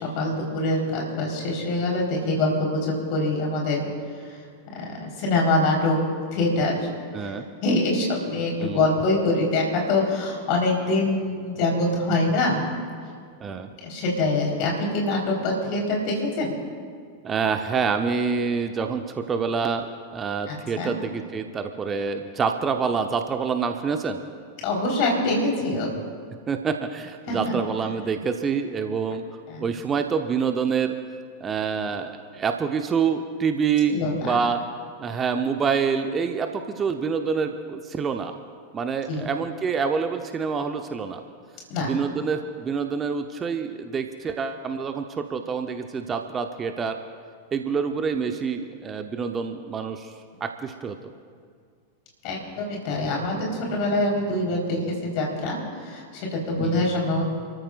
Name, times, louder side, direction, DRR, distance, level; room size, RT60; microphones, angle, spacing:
voice 1, 0.0-3.8 4.7-6.0 6.3-6.8 7.2-7.3 7.6-12.6 13.8-16.5 20.5-20.9 24.6-25.9 27.3-27.6 29.5-29.6 33.9-34.4 39.1-39.3 41.7-41.9 52.2-57.2, left 2 dB, 45° left, -1 dB, 4.1 m, -24 dB
voice 2, 7.1-7.4 8.6-8.9 13.4-13.7 17.2-19.9 20.1-24.2 26.5-29.3 29.6-30.9 31.4-34.6 35.0-38.3 38.7-41.2 41.8-47.0 47.5-50.1 50.4-51.0 56.6-56.8, right 6 dB, 20° right, 6 dB, 0.9 m, -26 dB
30.0 x 14.0 x 2.5 m, 2.1 s
figure-of-eight pair, 90°, 0 cm